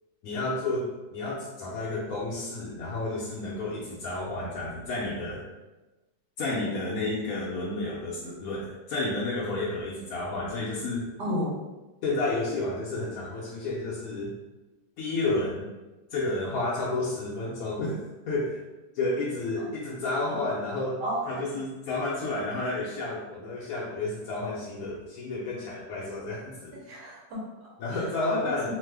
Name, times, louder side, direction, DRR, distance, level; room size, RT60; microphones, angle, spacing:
voice 1, 0.2-5.4 6.4-11.1 12.0-14.3 15.0-15.7 16.1-18.6 18.9-21.0 21.3-26.8 27.8-28.7, left 2 dB, 70° left, -5 dB, 0.9 m, -31 dB
voice 2, 11.2-11.6 19.6-19.7 21.0-21.4 26.7-27.7 28.3-28.7, equal, 75° right, -3 dB, 1.4 m, -33 dB
3.1 x 2.1 x 3.3 m, 1.1 s
omnidirectional pair, 1.9 m